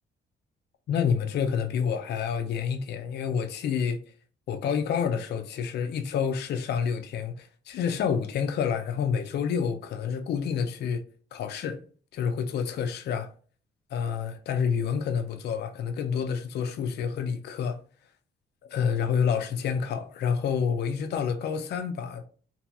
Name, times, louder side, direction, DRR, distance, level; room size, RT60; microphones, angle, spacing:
voice 1, 0.9-4.0 4.5-11.0 11.3-11.8 12.1-13.3 13.9-17.8 18.6-22.3, left 7 dB, 55° left, 0.4 m, -28 dB
2.7 x 2.6 x 2.3 m
cardioid pair, 90°, 20 cm